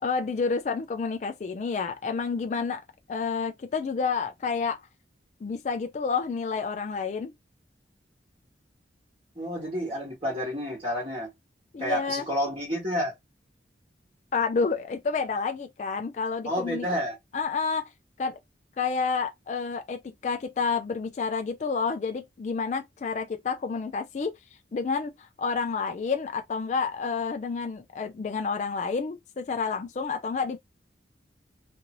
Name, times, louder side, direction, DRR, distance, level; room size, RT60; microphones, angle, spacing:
voice 1, 0.0-2.8 3.1-4.8 5.4-7.3 11.7-12.2 14.3-16.9 17.3-17.9 18.2-18.4 18.8-24.4 24.7-30.6, left 5 dB, 40° left, 0.3 m, -29 dB
voice 2, 9.4-11.3 11.8-13.1 16.4-17.1, equal, 25° right, 1.1 m, -30 dB
2.6 x 2.6 x 2.9 m
head